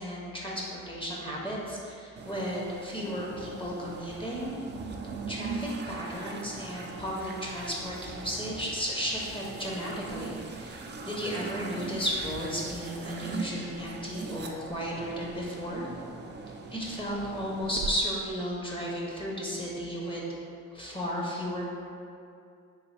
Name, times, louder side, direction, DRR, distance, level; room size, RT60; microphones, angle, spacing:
voice 1, 0.0-4.5 5.3-15.9 16.7-20.2 20.7-21.7, equal, 15° left, -4 dB, 0.8 m, -34 dB
sound 1, 2.2-17.9, right 4 dB, 35° right, 0.4 m, -40 dB
3.8 x 2.8 x 3.2 m, 2.4 s
cardioid pair, 90°, 30 cm